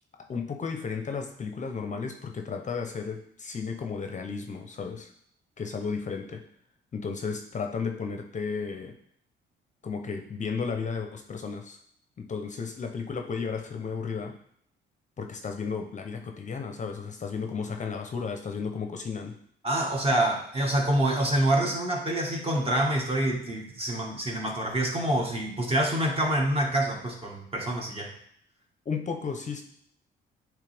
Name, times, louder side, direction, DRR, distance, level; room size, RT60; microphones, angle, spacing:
voice 1, 0.2-5.1 5.6-6.4 6.9-8.9 9.8-11.8 12.2-14.4 15.2-19.4 28.9-29.6, left 5 dB, 40° left, 5 dB, 0.7 m, -33 dB
voice 2, 19.6-28.1, right 1 dB, 30° right, 0 dB, 1.6 m, -26 dB
8.5 x 3.2 x 3.4 m, 0.68 s
cardioid pair, 90°, 20 cm